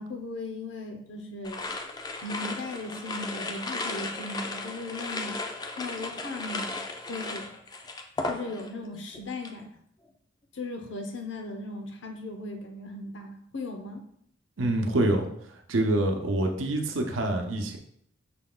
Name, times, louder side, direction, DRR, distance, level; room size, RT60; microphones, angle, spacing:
voice 1, 0.0-1.7 2.2-5.3 5.7-6.8 7.0-7.5 8.2-9.7 10.5-14.1, left 2 dB, 70° left, 4 dB, 0.7 m, -37 dB
sound 1, 1.4-8.9 9.1-9.6, left 3 dB, 20° left, 0.3 m, -35 dB
voice 2, 14.6-17.8, right 1 dB, 90° right, 4 dB, 0.7 m, -26 dB
5.8 x 2.3 x 3.8 m, 0.68 s
head